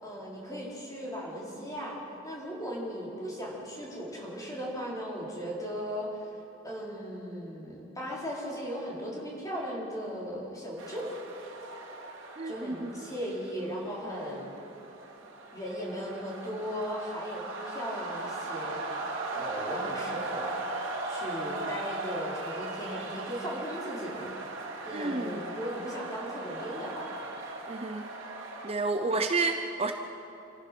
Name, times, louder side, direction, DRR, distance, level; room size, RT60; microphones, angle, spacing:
voice 1, 0.0-2.0 2.2-6.3 6.6-11.1 12.4-14.5 15.5-18.8 19.3-20.6 21.1-24.3 24.8-27.3 29.0-29.1, equal, 20° left, -4 dB, 4.7 m, -37 dB
Crowd Cheering - Full Recording, 10.8-28.7, right 2 dB, 75° right, 2.5 m, -38 dB
voice 2, 12.4-13.0 24.9-25.5 27.7-28.1 28.6-29.9, right 3 dB, 30° right, 5 dB, 0.7 m, -30 dB
28.0 x 15.0 x 6.2 m, 2.9 s
head